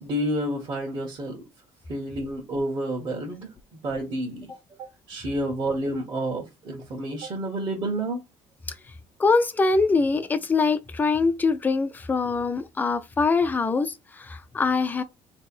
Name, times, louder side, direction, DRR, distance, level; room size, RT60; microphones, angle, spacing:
voice 1, 0.0-1.4 1.9-4.5 5.1-8.2, right 1 dB, 40° right, 1.5 m, -29 dB
voice 2, 9.2-15.0, left 4 dB, 15° left, 0.5 m, -23 dB
3.3 x 2.9 x 4.4 m
cardioid pair, 150°, 11 cm